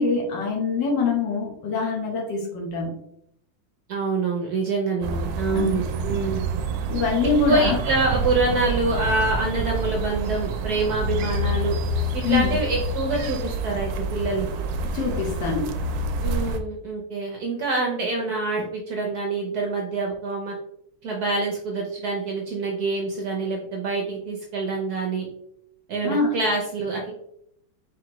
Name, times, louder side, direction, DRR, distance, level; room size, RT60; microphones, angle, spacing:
voice 1, 0.0-2.9 5.5-6.2 6.9-7.8 12.2-12.5 14.9-15.8 26.0-26.3, left 4 dB, 65° left, 0 dB, 1.6 m, -24 dB
voice 2, 3.9-6.5 7.4-11.8 12.1-14.5 16.2-20.5 21.0-25.2 25.9-27.1, right 3 dB, 65° right, 0 dB, 1.0 m, -26 dB
sound 1, 5.0-16.6, right 2 dB, 85° right, 1.4 m, -27 dB
4.8 x 3.4 x 3.0 m, 0.74 s
omnidirectional pair, 2.3 m